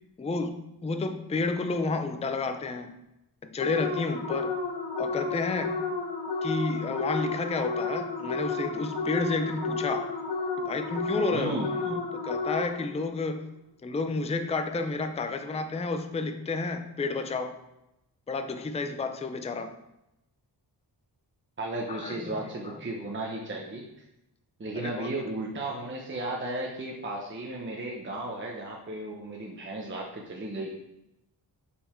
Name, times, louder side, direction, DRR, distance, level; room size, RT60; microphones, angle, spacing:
voice 1, 0.2-2.9 3.4-4.6 5.0-5.8 6.4-10.1 10.6-11.6 11.8-13.5 13.8-17.6 18.3-19.7 21.9-22.3 22.6-22.7 24.7-25.1, left 3 dB, 15° left, 7 dB, 0.4 m, -31 dB
sound 1, 3.6-13.0, left 4 dB, 70° left, 1.2 m, -32 dB
voice 2, 11.3-11.7 21.6-23.8 24.6-30.7, right 2 dB, 30° right, -1 dB, 0.8 m, -34 dB
6.5 x 5.6 x 4.4 m, 0.90 s
wide cardioid pair, 175°, 41 cm